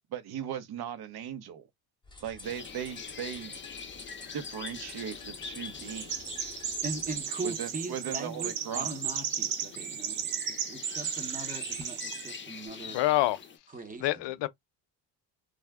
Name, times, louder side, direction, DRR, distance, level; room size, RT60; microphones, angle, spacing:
voice 1, 0.1-1.6 2.2-3.5 4.3-6.2 7.4-8.9, right 9 dB, 55° right, 0.8 m, -38 dB
sound 1, 2.0-7.2, left 3 dB, 10° left, 0.9 m, -50 dB
sound 2, 2.4-13.6, left 6 dB, 25° left, 0.6 m, -44 dB
Chirp tweet, 5.8-12.4, right 9 dB, 70° right, 1.1 m, -35 dB
voice 2, 6.8-13.0 13.7-14.1, right 3 dB, 20° right, 0.8 m, -40 dB
voice 3, 12.9-13.4 14.0-14.5, left 16 dB, 65° left, 0.6 m, -26 dB
2.3 x 2.1 x 3.4 m
cardioid pair, 90°, 47 cm